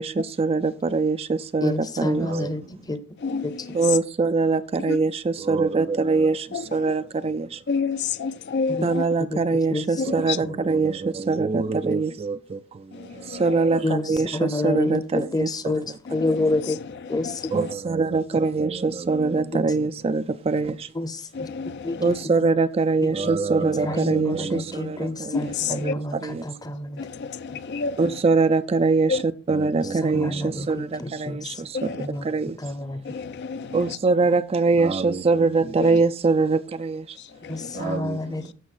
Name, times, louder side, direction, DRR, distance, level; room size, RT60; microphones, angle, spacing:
voice 1, 0.0-2.7 3.7-7.6 8.8-16.0 16.3-16.4 17.5-20.9 22.0-26.5 28.0-32.6 33.7-37.2 37.7-38.5, right 4 dB, 25° right, 0.3 m, -23 dB
voice 2, 1.6-3.0 3.4-3.5 8.7-8.9 9.3-9.8 10.4-10.5 13.8-14.0 14.3-15.8 16.1-16.8 17.1-17.5 19.5-19.6 21.0-21.2 21.8-22.1 22.4-22.5 23.0-23.1 23.8-27.0 30.1-31.5 32.0-32.3 32.6-33.0 37.5-38.4, left 2 dB, 20° left, 0.7 m, -28 dB
voice 3, 3.2-3.8 4.9-5.0 6.5-6.9 7.7-9.0 10.0-10.4 12.9-13.4 16.1-16.8 17.0-17.7 21.4-22.1 25.3-26.0 27.0-28.0 29.1-29.2 31.7-32.1 33.0-34.0 35.8-36.0 37.4-38.0, left 5 dB, 50° left, 0.4 m, -30 dB
14.5 x 6.2 x 2.5 m
head